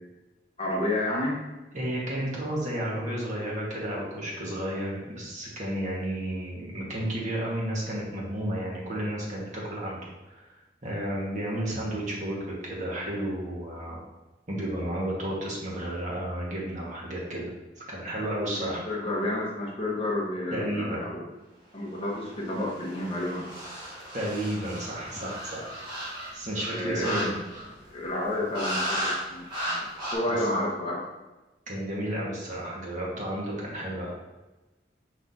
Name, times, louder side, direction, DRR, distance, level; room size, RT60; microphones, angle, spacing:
voice 1, 0.6-1.4 18.6-21.3 21.7-23.5 26.7-27.3 27.9-31.0, left 1 dB, 35° left, -3 dB, 1.2 m, -30 dB
voice 2, 1.7-10.0 10.4-10.5 10.8-14.0 14.5-17.5 17.9-18.8 20.5-21.0 24.1-25.7 26.3-27.3 30.4-30.5 31.7-34.1, right 1 dB, 45° right, -4 dB, 1.6 m, -32 dB
sound 1, 22.2-27.8 28.5-29.2 29.5-30.2, equal, 25° right, 1.8 m, -34 dB
6.0 x 5.8 x 2.8 m, 1.1 s
head